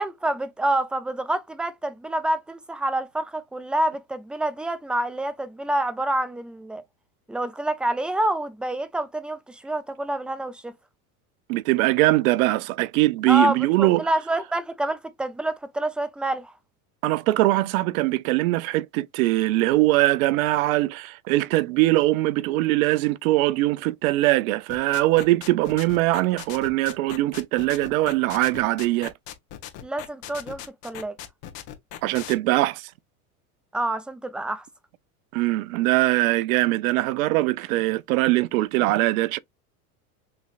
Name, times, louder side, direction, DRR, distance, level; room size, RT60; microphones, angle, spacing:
voice 1, 0.0-6.8 7.3-10.7 13.3-16.5 29.8-31.2 33.7-34.6, right 1 dB, ahead, 0.4 m, -27 dB
voice 2, 11.5-14.1 17.0-29.1 32.0-32.9 35.3-39.4, right 18 dB, 70° right, 0.6 m, -22 dB
sound 1, 24.7-32.3, left 12 dB, 50° left, 1.3 m, -38 dB
5.9 x 3.1 x 2.4 m
hypercardioid pair, 95°, 44 cm